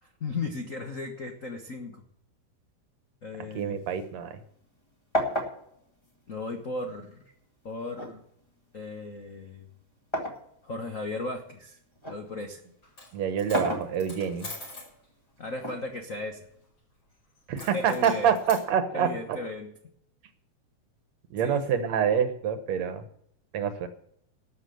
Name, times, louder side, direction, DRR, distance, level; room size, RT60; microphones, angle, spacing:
voice 1, 0.0-2.0 3.2-3.9 6.3-7.2 7.6-8.2 8.7-9.7 10.6-11.8 12.1-12.6 15.4-16.4 17.7-18.3 18.9-19.7 21.4-21.6, left 2 dB, 80° left, 3 dB, 0.7 m, -36 dB
sound 1, 3.5-4.8 5.1-7.1 8.0-10.5 11.0-12.3 13.3-14.5 15.6-16.6, equal, 10° left, 1.5 m, -34 dB
voice 2, 3.6-4.4 13.1-14.5 17.5-19.4 21.3-23.0 23.5-23.9, right 8 dB, 65° right, 9 dB, 2.2 m, -26 dB
Coin (dropping), 12.8-13.1 13.4-14.9 17.6-18.7, left 2 dB, 40° left, 5.9 m, -43 dB
12.5 x 7.4 x 7.7 m, 0.73 s
omnidirectional pair, 3.5 m